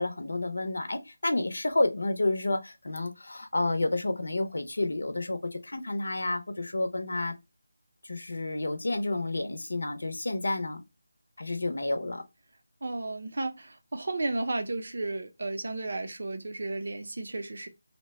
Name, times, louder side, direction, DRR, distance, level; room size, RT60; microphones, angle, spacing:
voice 1, 0.0-7.3 8.0-10.8 11.4-12.2, left 2 dB, 70° left, 0.8 m, -30 dB
voice 2, 12.8-17.7, right 2 dB, 45° right, 0.6 m, -33 dB
2.8 x 2.2 x 4.0 m
figure-of-eight pair, 180°, 0 cm